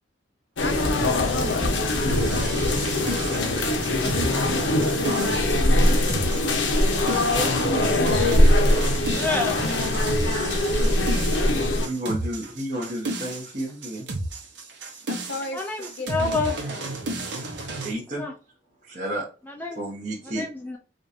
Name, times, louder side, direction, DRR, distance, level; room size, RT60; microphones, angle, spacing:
sound 1, 0.6-11.9, left 1 dB, 85° left, 0.9 m, -22 dB
voice 1, 0.6-4.5 15.1-15.6 16.0-17.1 17.6-17.7, left 3 dB, 65° left, 0.5 m, -37 dB
sound 2, 2.1-17.9, right 2 dB, 70° right, 1.1 m, -32 dB
voice 2, 6.5-6.9 7.3-8.1 11.4-14.1 17.4-18.2 18.8-19.3 19.7-20.4, right 1 dB, 45° right, 1.2 m, -32 dB
voice 3, 9.1-9.6 15.4-16.6 18.2-18.3 19.5-19.8 20.3-20.8, left 3 dB, 10° left, 0.4 m, -29 dB
5.1 x 2.5 x 2.7 m
head